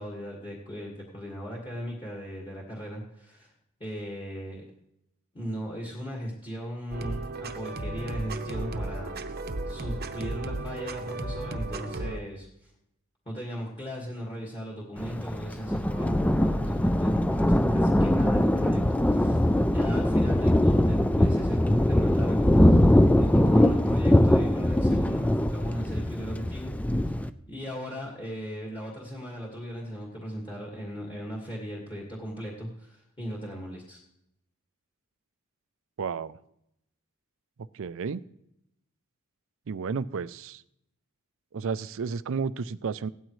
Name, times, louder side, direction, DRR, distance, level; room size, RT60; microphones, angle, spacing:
voice 1, 0.0-3.5 3.8-4.7 5.3-12.7 13.3-22.8 23.1-26.7 27.5-34.0, equal, 25° left, -4 dB, 1.9 m, -38 dB
sound 1, 6.9-12.2, right 2 dB, 50° right, 0.8 m, -34 dB
Thunder, 15.0-27.3, left 1 dB, 5° left, 0.4 m, -22 dB
voice 2, 36.0-36.4 37.7-38.2 39.7-40.6 41.5-43.1, right 5 dB, 65° right, 16 dB, 0.5 m, -32 dB
16.5 x 13.0 x 3.2 m, 0.80 s
head